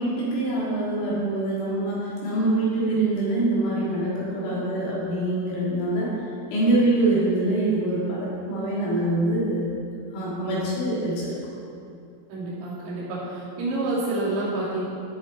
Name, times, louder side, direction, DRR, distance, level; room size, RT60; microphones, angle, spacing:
voice 1, 0.0-6.1 6.5-9.7 10.1-11.4, right 2 dB, 85° left, -8 dB, 6.3 m, -24 dB
voice 2, 12.3-14.8, right 2 dB, 80° right, -8 dB, 5.7 m, -28 dB
16.0 x 7.3 x 4.7 m, 2.5 s
omnidirectional pair, 6.0 m